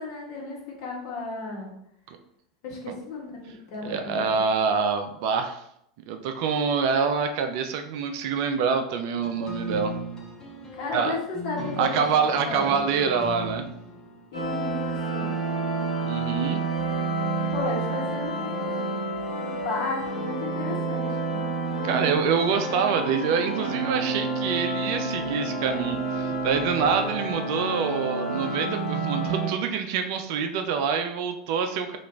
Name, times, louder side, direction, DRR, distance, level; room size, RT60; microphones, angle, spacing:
voice 1, 0.0-1.7 2.6-4.3 10.7-12.9 14.3-15.3 17.5-19.0 19.4-21.5, left 3 dB, 50° left, -2 dB, 1.1 m, -34 dB
voice 2, 3.8-5.6 6.1-9.9 10.9-11.2 11.8-13.6 16.0-16.6 21.8-32.0, right 6 dB, 50° right, 6 dB, 0.4 m, -26 dB
sound 1, 9.2-14.6, equal, 20° left, 0.6 m, -37 dB
sound 2, 14.3-29.5, right 2 dB, 85° left, 1.3 m, -29 dB
2.9 x 2.4 x 3.1 m, 0.73 s
figure-of-eight pair, 85°, 3 cm